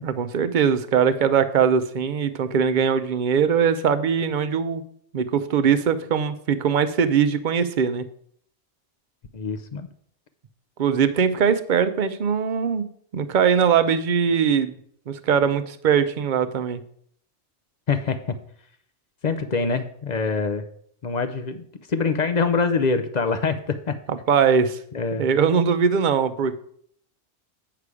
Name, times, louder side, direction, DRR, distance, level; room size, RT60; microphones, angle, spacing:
voice 1, 0.0-4.8 5.1-8.0 10.8-12.9 13.1-14.7 15.1-16.8 24.1-24.8 25.2-26.6, right 7 dB, 50° right, 10 dB, 0.7 m, -21 dB
voice 2, 9.3-9.9 17.9-18.2 19.2-20.6 21.0-24.0 24.9-25.3, left 4 dB, 45° left, 9 dB, 0.6 m, -24 dB
8.3 x 5.8 x 4.8 m, 0.64 s
omnidirectional pair, 1.2 m